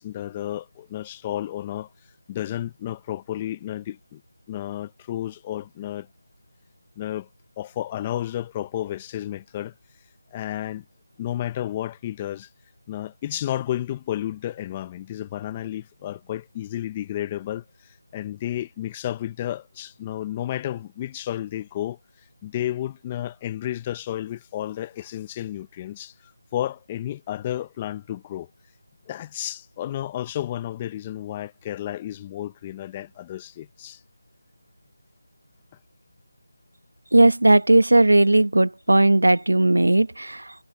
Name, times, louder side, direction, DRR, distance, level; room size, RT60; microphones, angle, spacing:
voice 1, 0.0-1.9 2.3-4.2 4.5-6.1 7.0-7.3 7.6-9.7 10.3-10.8 11.2-12.5 12.9-17.6 18.1-22.0 22.4-28.5 29.1-34.0, left 12 dB, 15° left, 0.8 m, -32 dB
voice 2, 37.1-40.5, right 2 dB, 80° right, 1.2 m, -17 dB
figure-of-eight pair, 170°, 0 cm